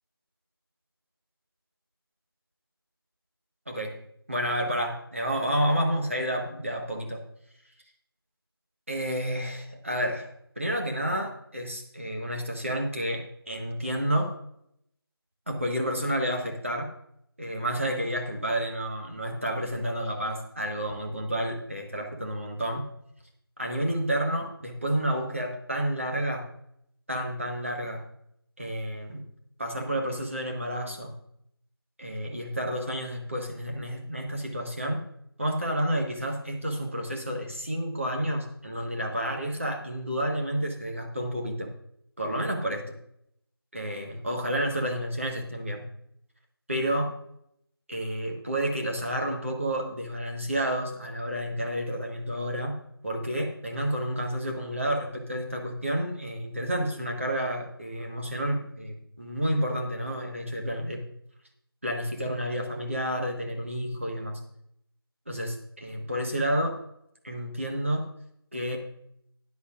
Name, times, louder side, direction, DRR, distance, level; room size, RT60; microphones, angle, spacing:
voice 1, 3.7-4.0 4.3-7.2 8.9-10.3 10.6-14.3 15.5-16.9 17.4-22.9 23.6-26.5 27.1-28.0 28.6-29.3 29.6-31.1 32.0-35.0 35.4-41.7 42.2-42.8 43.7-45.8 46.7-47.1 47.9-61.0 61.8-64.4 65.3-66.8 67.2-68.1 68.5-68.8, equal, 30° right, 1 dB, 1.3 m, -30 dB
13.5 x 10.5 x 2.4 m, 0.74 s
figure-of-eight pair, 175°, 13 cm